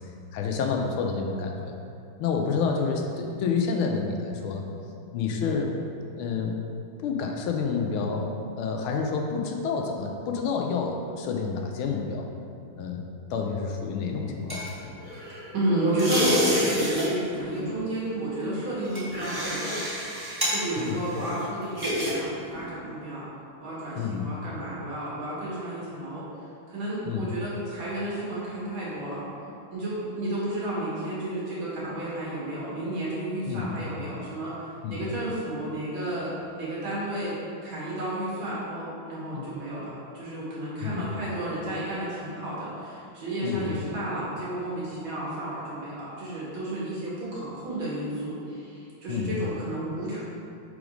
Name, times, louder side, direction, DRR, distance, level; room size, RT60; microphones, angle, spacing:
voice 1, 0.3-1.8 2.2-4.7 5.1-5.7 6.2-6.6 7.0-8.3 8.6-12.3 12.8-13.0 13.3-14.7 20.8-21.0 23.9-24.3 27.0-27.3 33.5-33.8 34.8-35.0 39.3-39.6 40.8-41.1 43.4-43.7 49.1-49.4, left 5 dB, 85° left, 2 dB, 1.5 m, -29 dB
sound 1, 14.0-15.5 15.9-17.1 17.4-17.7 18.3-22.1 22.5-22.7, equal, 15° right, 0.8 m, -29 dB
voice 2, 15.5-19.8 20.5-23.2 23.6-26.2 26.7-29.3 29.7-34.5 34.9-37.3 37.6-50.2, right 1 dB, 65° right, -8 dB, 2.5 m, -32 dB
4.9 x 3.9 x 5.0 m, 2.5 s
omnidirectional pair, 2.3 m